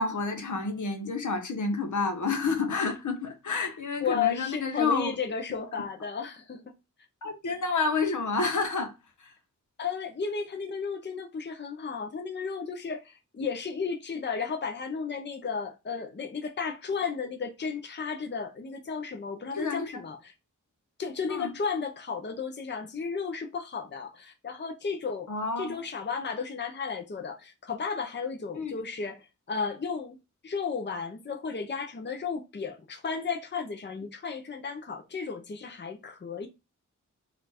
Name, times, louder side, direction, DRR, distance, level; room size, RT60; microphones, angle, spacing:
voice 1, 0.0-5.1 7.2-8.9 9.2-9.3 19.5-20.0 21.3-21.5 25.3-25.8 28.5-28.7, left 4 dB, 70° left, 1.0 m, -29 dB
voice 2, 4.0-6.6 9.8-20.3 21.0-25.3 25.6-30.2 30.4-36.5, left 5 dB, 35° left, 0.7 m, -33 dB
4.2 x 2.5 x 4.2 m
wide cardioid pair, 105°, 31 cm